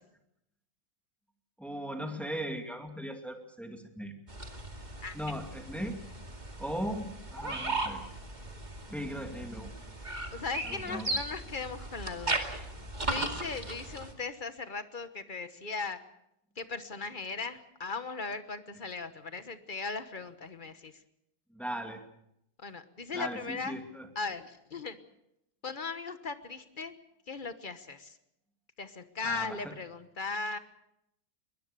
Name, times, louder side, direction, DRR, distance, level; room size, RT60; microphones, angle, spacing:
voice 1, 1.6-4.1 5.1-6.0 6.6-8.0 8.9-9.8 10.6-11.1 21.5-22.0 23.1-24.1 29.2-29.7, equal, ahead, 4 dB, 2.2 m, -38 dB
sound 1, 4.3-14.1, right 2 dB, 20° right, 2.2 m, -37 dB
voice 2, 10.3-12.5 13.1-16.0 16.6-21.0 22.6-23.8 24.1-25.0 25.6-26.9 27.3-28.2 28.8-30.6, left 4 dB, 30° left, 10 dB, 1.0 m, -38 dB
22.5 x 20.5 x 6.8 m, 0.80 s
omnidirectional pair, 2.4 m